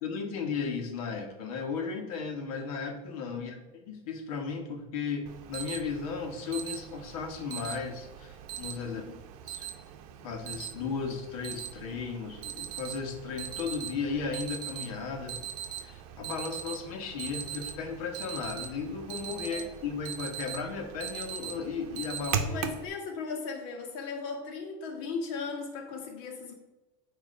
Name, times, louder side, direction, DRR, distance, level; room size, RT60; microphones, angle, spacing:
voice 1, 0.0-3.6 3.9-9.0 9.5-9.7 10.2-15.4 15.8-22.6, left 5 dB, 90° left, 3 dB, 1.4 m, -35 dB
Alarm, 5.3-22.9, right 9 dB, 75° right, 0.7 m, -40 dB
voice 2, 8.8-9.2 19.5-19.7 22.4-26.5, left 4 dB, 60° left, 1 dB, 1.5 m, -37 dB
8.5 x 3.0 x 5.1 m, 1.1 s
cardioid pair, 165°, 18 cm